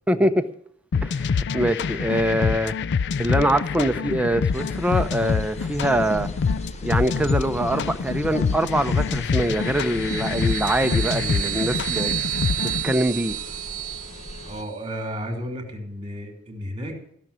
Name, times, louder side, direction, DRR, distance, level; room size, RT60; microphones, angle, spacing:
voice 1, 0.1-0.5 1.0-2.7 3.2-6.3 6.8-12.1 12.6-13.4, right 1 dB, 5° right, 0.7 m, -23 dB
sound 1, 0.9-12.9, left 5 dB, 55° left, 0.4 m, -26 dB
sound 2, 4.5-14.6, left 1 dB, 35° left, 1.4 m, -41 dB
sound 3, 9.3-14.8, right 15 dB, 40° right, 0.5 m, -31 dB
voice 2, 14.4-17.0, equal, 25° right, 2.9 m, -33 dB
15.0 x 6.3 x 8.7 m
head